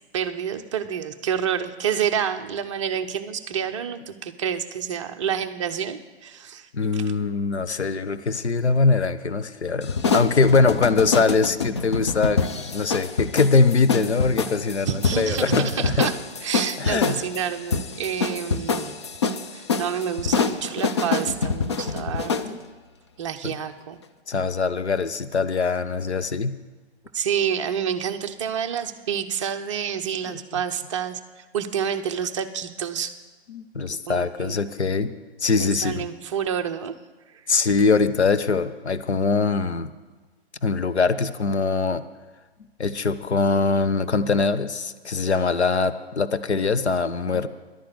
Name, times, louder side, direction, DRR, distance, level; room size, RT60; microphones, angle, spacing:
voice 1, 0.1-7.1 14.9-18.9 19.5-22.6 23.2-24.0 27.1-31.2 31.5-33.2 34.1-34.6 35.6-37.0, right 8 dB, 30° right, 6 dB, 0.7 m, -28 dB
voice 2, 6.7-15.9 16.8-17.2 22.4-22.6 23.4-23.5 24.3-26.6 30.3-30.4 33.5-35.1 35.4-36.0 37.5-39.9 40.6-42.0 42.8-47.5, left 4 dB, 80° left, 10 dB, 0.9 m, -22 dB
sound 1, 9.8-22.5, left 4 dB, 25° left, 0.4 m, -26 dB
11.0 x 10.5 x 8.1 m, 1.3 s
figure-of-eight pair, 135°, 33 cm